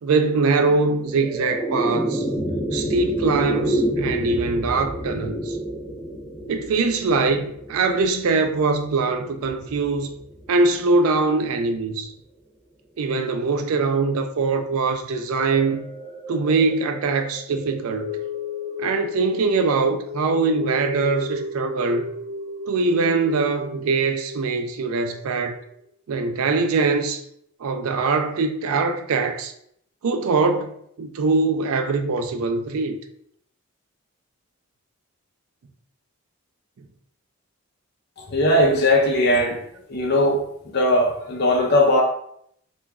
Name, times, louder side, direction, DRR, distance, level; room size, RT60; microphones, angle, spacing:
voice 1, 0.0-2.3 2.7-5.6 6.5-10.2 10.5-12.1 13.0-15.8 16.3-18.1 18.8-22.1 22.7-25.6 26.1-27.2 27.6-29.5 30.0-30.7 31.0-33.0, right 3 dB, 80° right, 0.4 m, -22 dB
sound 1, 0.7-11.2, right 1 dB, 15° left, 0.8 m, -29 dB
sound 2, 15.4-25.8 26.2-26.3, left 2 dB, 20° right, 0.5 m, -34 dB
voice 2, 38.3-39.6 39.9-42.0, left 1 dB, 50° left, 0.6 m, -19 dB
3.0 x 2.4 x 3.5 m
head